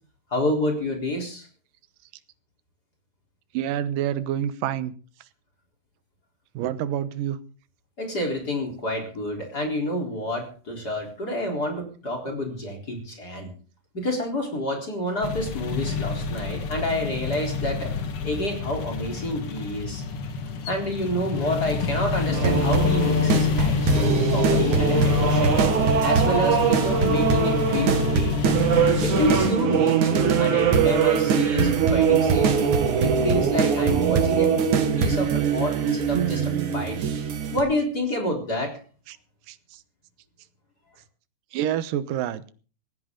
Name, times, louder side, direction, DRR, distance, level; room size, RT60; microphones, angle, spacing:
voice 1, 0.3-1.5 8.0-13.5 13.9-17.9 18.2-20.0 20.6-25.6 26.0-28.6 29.0-32.6 33.0-34.5 35.0-37.0 37.5-38.7, left 1 dB, 30° left, 2 dB, 4.3 m, -28 dB
voice 2, 3.5-5.0 6.5-7.4 39.1-39.2 39.5-39.8 41.5-42.5, right 11 dB, 80° right, 13 dB, 2.7 m, -28 dB
sound 1, 15.2-29.5, left 6 dB, 50° left, 2.2 m, -27 dB
sound 2, 22.3-37.6, right 6 dB, 65° right, 3.3 m, -22 dB
19.0 x 16.0 x 3.8 m, 0.38 s
omnidirectional pair, 3.8 m